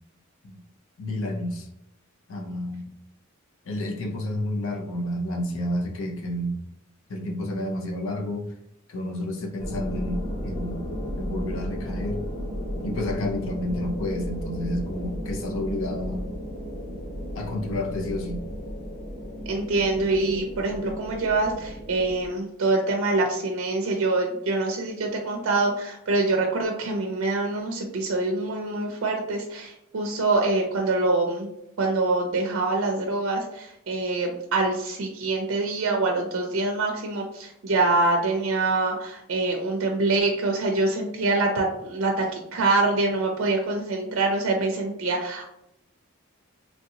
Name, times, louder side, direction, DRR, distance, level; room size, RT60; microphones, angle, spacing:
voice 1, 1.0-1.7 2.3-2.9 3.6-6.6 7.1-8.5 8.9-10.8 11.2-12.3 12.8-16.3 17.3-18.5, left 1 dB, 65° left, 2 dB, 0.6 m, -30 dB
sound 1, 9.6-22.3, equal, 20° left, 0.8 m, -34 dB
voice 2, 19.5-31.5 31.8-45.5, right 2 dB, 65° right, 1 dB, 0.5 m, -25 dB
3.2 x 2.7 x 2.7 m, 0.80 s
head